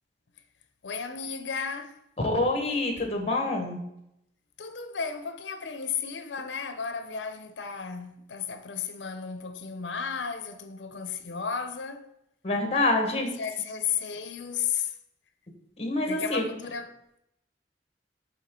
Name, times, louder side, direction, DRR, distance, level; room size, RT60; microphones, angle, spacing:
voice 1, 0.8-2.0 4.6-12.1 13.1-14.9 16.1-17.0, left 6 dB, 85° left, 0.6 m, -34 dB
voice 2, 2.2-3.8 12.4-13.4 15.8-16.4, left 2 dB, 35° left, 1.3 m, -26 dB
7.5 x 4.1 x 3.7 m
head